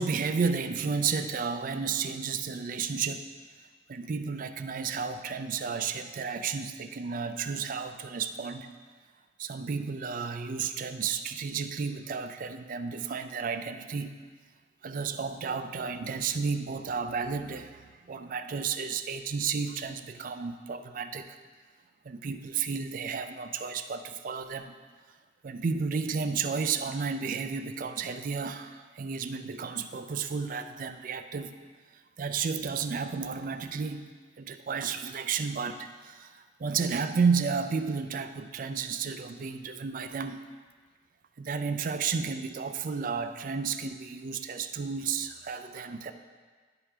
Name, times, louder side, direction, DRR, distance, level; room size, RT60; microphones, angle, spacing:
voice 1, 0.0-3.3 3.9-8.7 9.4-14.1 14.8-21.4 22.0-24.8 25.4-31.5 32.2-34.1 34.4-40.5 41.4-46.1, right 5 dB, 45° right, 9 dB, 0.4 m, -32 dB
11.0 x 4.9 x 3.3 m, 1.5 s
head